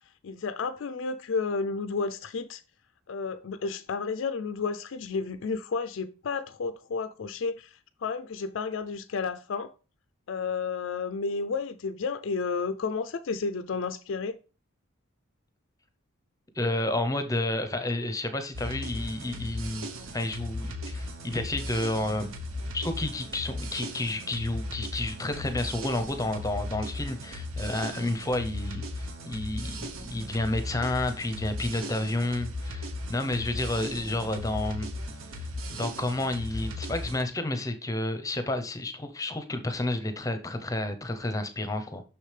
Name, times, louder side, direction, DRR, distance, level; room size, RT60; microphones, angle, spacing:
voice 1, 0.2-2.6 3.1-9.7 10.3-14.4, left 4 dB, 65° left, 0.4 m, -32 dB
voice 2, 16.6-19.9 20.1-22.3 22.7-34.9 35.3-42.0, left 1 dB, 15° left, 0.7 m, -30 dB
sound 1, 18.5-37.2, left 1 dB, 75° right, 1.0 m, -37 dB
6.5 x 6.1 x 3.3 m
head